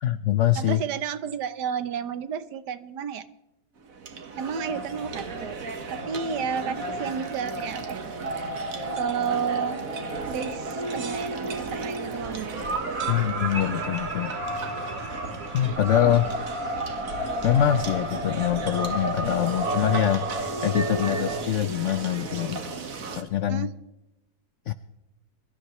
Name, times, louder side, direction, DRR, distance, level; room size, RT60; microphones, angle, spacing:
voice 1, 0.0-0.8 13.1-14.4 15.5-16.3 17.4-20.3 20.6-22.6 23.2-23.7 24.7-24.8, left 11 dB, 85° left, 12 dB, 0.6 m, -24 dB
voice 2, 0.6-3.2 4.4-5.6 5.9-8.0 8.9-9.8 10.3-12.6 23.5-23.7, right 7 dB, 70° right, 13 dB, 1.4 m, -31 dB
sound 1, 3.8-23.2, right 3 dB, 50° right, 1.6 m, -35 dB
sound 2, 8.2-21.4, right 2 dB, 35° right, 1.9 m, -33 dB
23.0 x 13.0 x 3.1 m, 0.95 s
omnidirectional pair, 1.9 m